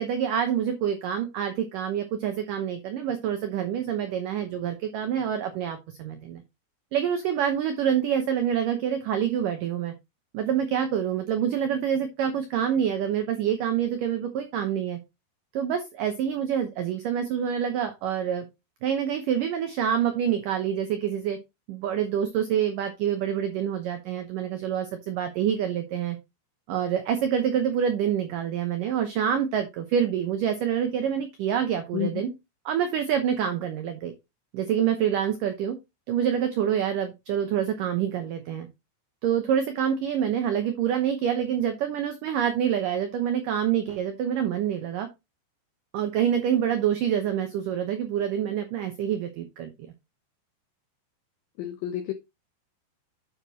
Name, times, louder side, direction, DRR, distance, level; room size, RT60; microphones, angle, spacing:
voice 1, 0.0-6.4 6.9-9.9 10.3-15.0 15.5-18.4 18.8-21.4 21.7-26.2 26.7-32.3 32.7-34.1 34.5-35.8 36.1-38.7 39.2-45.1 45.9-49.7, right 9 dB, 90° right, 1.8 m, -26 dB
voice 2, 51.6-52.1, left 12 dB, 90° left, 2.0 m, -30 dB
9.7 x 6.3 x 3.0 m
omnidirectional pair, 5.1 m